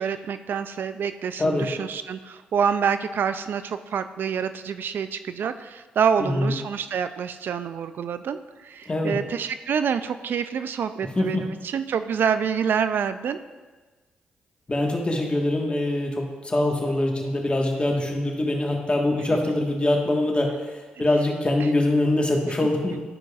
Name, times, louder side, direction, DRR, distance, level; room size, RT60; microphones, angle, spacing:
voice 1, 0.0-13.4, right 7 dB, 65° right, 11 dB, 0.3 m, -27 dB
voice 2, 6.2-6.5 8.9-9.2 11.1-11.5 14.7-23.0, left 1 dB, 30° left, 1 dB, 1.5 m, -24 dB
11.5 x 5.1 x 2.4 m, 1.3 s
supercardioid pair, 55°, 4 cm